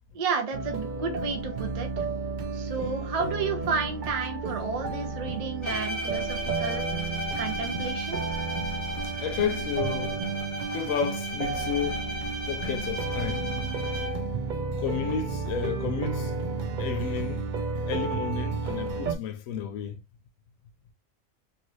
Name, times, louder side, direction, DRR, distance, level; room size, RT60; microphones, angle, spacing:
voice 1, 0.1-2.0 2.5-6.8 7.4-8.2, right 5 dB, 40° right, 0.6 m, -32 dB
sound 1, 0.5-19.2, right 4 dB, 85° right, 0.4 m, -32 dB
Bowed string instrument, 5.6-14.4, left 1 dB, 25° left, 0.8 m, -35 dB
voice 2, 9.0-10.3 10.7-12.1 12.5-13.5 14.8-16.3 16.8-17.5 17.9-20.0, left 8 dB, 85° left, 1.0 m, -32 dB
2.9 x 2.6 x 3.0 m
omnidirectional pair, 1.4 m